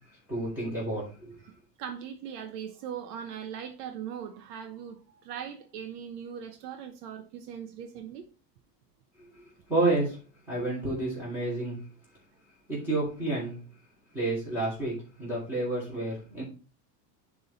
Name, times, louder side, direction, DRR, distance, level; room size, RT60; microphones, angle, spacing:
voice 1, 0.3-1.4 9.7-10.2 10.5-11.8 12.7-13.6 14.1-16.4, right 2 dB, 5° right, 3.1 m, -30 dB
voice 2, 1.4-8.2, right 8 dB, 70° right, 1.1 m, -40 dB
10.5 x 3.7 x 4.1 m
cardioid pair, 170°, 48 cm